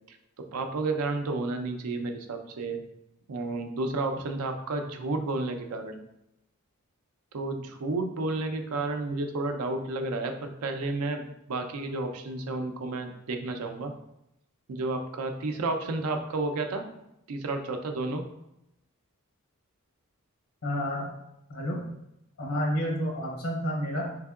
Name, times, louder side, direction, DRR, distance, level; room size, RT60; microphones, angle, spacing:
voice 1, 0.5-2.8 3.3-6.0 7.3-13.9 14.7-16.8 17.3-18.2, right 2 dB, 85° right, 5 dB, 0.5 m, -31 dB
voice 2, 20.6-21.1 21.5-21.8 22.4-24.1, equal, 70° left, -1 dB, 0.7 m, -30 dB
3.6 x 3.3 x 2.3 m, 0.84 s
head